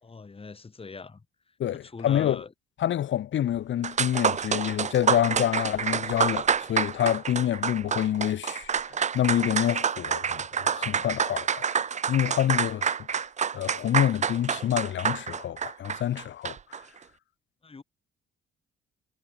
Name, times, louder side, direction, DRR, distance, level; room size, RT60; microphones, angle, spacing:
voice 1, 0.0-1.2 1.8-2.5 17.6-17.8, left 4 dB, 30° left, 5.0 m, -41 dB
voice 2, 1.6-2.4 2.8-11.8 12.1-13.3 13.5-16.8, left 11 dB, 70° left, 4.4 m, -27 dB
sound 1, 3.5-3.6 3.8-16.8, right 7 dB, 35° right, 0.8 m, -28 dB
cardioid pair, 90°, 20 cm